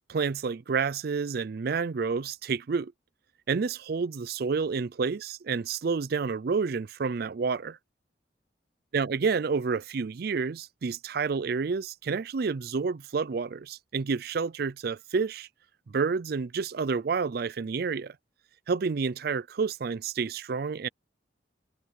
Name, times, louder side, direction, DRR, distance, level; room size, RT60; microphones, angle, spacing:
voice 1, 0.1-2.9 3.5-7.8 8.9-15.5 15.9-18.2 18.7-20.9, right 5 dB, 55° right, 0.4 m, -29 dB
head